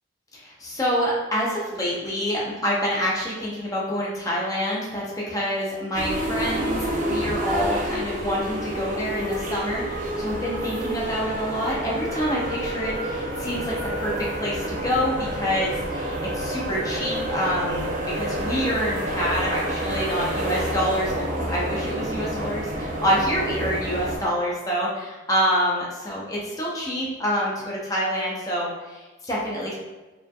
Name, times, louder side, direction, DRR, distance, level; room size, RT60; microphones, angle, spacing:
voice 1, 0.3-6.8 7.1-17.9 18.1-29.7, equal, 15° left, -5 dB, 0.7 m, -27 dB
sound 1, 5.9-24.2, right 1 dB, 40° right, 0.5 m, -29 dB
4.6 x 3.2 x 2.3 m, 1.2 s
head